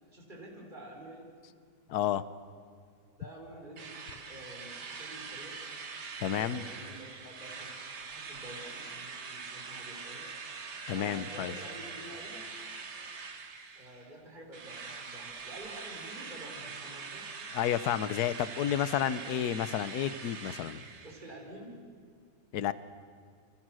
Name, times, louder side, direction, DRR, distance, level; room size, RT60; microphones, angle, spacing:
voice 1, 0.0-1.3 3.2-5.6 6.3-7.8 8.1-10.3 10.9-12.5 13.8-17.3 21.0-21.8, right 1 dB, 25° right, 0 dB, 5.1 m, -49 dB
voice 2, 1.9-2.2 6.2-6.6 10.9-11.5 17.5-20.8 22.5-22.7, left 10 dB, 65° left, 15 dB, 1.3 m, -31 dB
Drill, 3.8-14.1 14.5-21.4, right 5 dB, 65° right, 2.5 m, -43 dB
29.0 x 28.0 x 6.3 m, 2.2 s
omnidirectional pair, 1.9 m